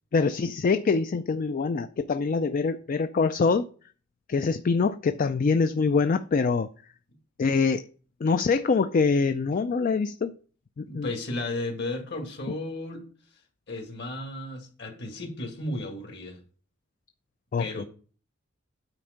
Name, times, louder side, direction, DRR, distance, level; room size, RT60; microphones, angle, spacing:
voice 1, 0.1-3.7 4.3-6.7 7.4-7.8 8.2-10.3 10.8-11.1 17.5-17.8, left 4 dB, 45° left, 0.4 m, -24 dB
voice 2, 10.8-13.0 13.7-16.4 17.6-17.9, left 2 dB, 60° left, 2.0 m, -34 dB
9.0 x 4.4 x 5.1 m
head